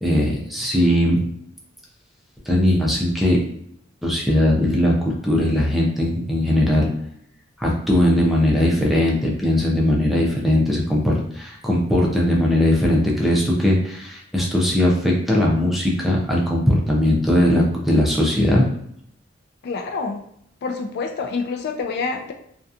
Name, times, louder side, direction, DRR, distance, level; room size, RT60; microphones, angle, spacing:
voice 1, 0.0-1.2 2.5-3.4 4.0-6.9 7.6-18.6, left 1 dB, ahead, -3 dB, 0.5 m, -19 dB
voice 2, 19.6-20.2 20.6-22.3, left 4 dB, 55° left, 4 dB, 0.3 m, -27 dB
2.8 x 2.2 x 2.4 m, 0.71 s
head